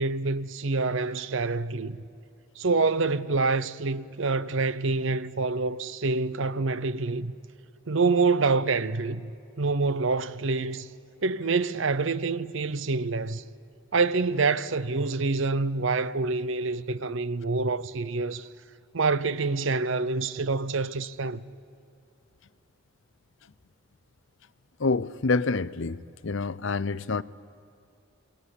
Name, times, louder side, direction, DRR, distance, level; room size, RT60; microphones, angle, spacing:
voice 1, 0.0-2.0 2.6-7.3 7.9-9.3 9.6-10.9 11.2-13.4 13.9-18.5 18.9-21.4, right 3 dB, 60° right, 0.8 m, -26 dB
voice 2, 24.8-27.2, left 3 dB, 60° left, 0.6 m, -27 dB
28.0 x 20.5 x 10.0 m
head